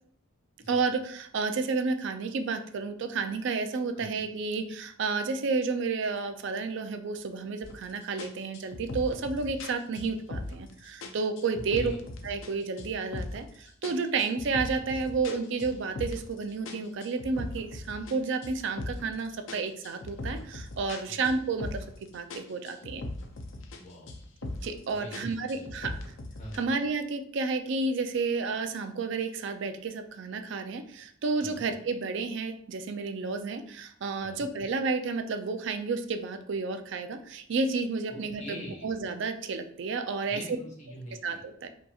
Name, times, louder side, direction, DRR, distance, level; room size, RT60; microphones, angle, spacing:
voice 1, 0.7-11.9 12.2-23.0 24.6-26.0 26.5-40.4 41.2-41.7, right 4 dB, 60° right, 7 dB, 0.4 m, -31 dB
sound 1, 7.6-7.8 8.2-10.7 11.0-12.5 12.8-13.5 13.8-16.3 16.7-19.1 19.5-22.0 22.3-23.8 24.1-24.8 25.1-26.6, left 2 dB, 70° left, 0.5 m, -39 dB
voice 2, 11.5-12.0 21.0-21.3 23.8-24.1 24.9-25.9 26.4-26.7 31.4-31.6 34.2-34.4 38.1-38.9 40.3-41.4, equal, 35° left, -3 dB, 1.3 m, -44 dB
5.1 x 2.8 x 2.4 m, 0.64 s
head